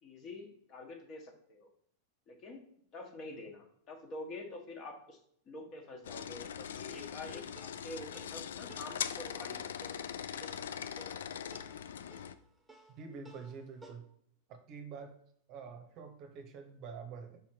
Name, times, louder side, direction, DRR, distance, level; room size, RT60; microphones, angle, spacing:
voice 1, 0.0-1.7 2.3-2.6 2.9-5.2 5.5-9.7, left 2 dB, 35° left, 2 dB, 1.4 m, -47 dB
sound 1, 6.0-12.4, left 8 dB, 65° left, 0.3 m, -41 dB
sound 2, 7.0-14.0, right 2 dB, ahead, 1.3 m, -57 dB
voice 2, 13.0-14.0 14.5-15.1 15.5-17.4, right 5 dB, 40° right, 6 dB, 0.8 m, -47 dB
5.4 x 4.2 x 4.4 m, 0.66 s
figure-of-eight pair, 90°, 0 cm